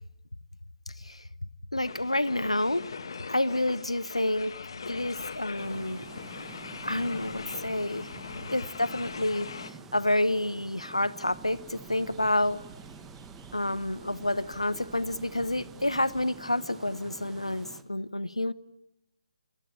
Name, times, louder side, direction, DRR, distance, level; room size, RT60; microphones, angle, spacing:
voice 1, 0.9-1.2 1.7-2.8 3.3-4.5 4.9-6.1 6.8-8.1 8.5-12.6 13.5-18.5, left 1 dB, 80° left, 18 dB, 1.1 m, -29 dB
sound 1, 1.8-9.7, left 5 dB, 55° left, 2.1 m, -41 dB
sound 2, 5.6-17.8, right 5 dB, 10° right, 1.4 m, -48 dB
sound 3, 11.2-16.3, right 5 dB, 35° right, 4.2 m, -53 dB
28.5 x 19.0 x 10.0 m, 0.88 s
figure-of-eight pair, 140°, 3 cm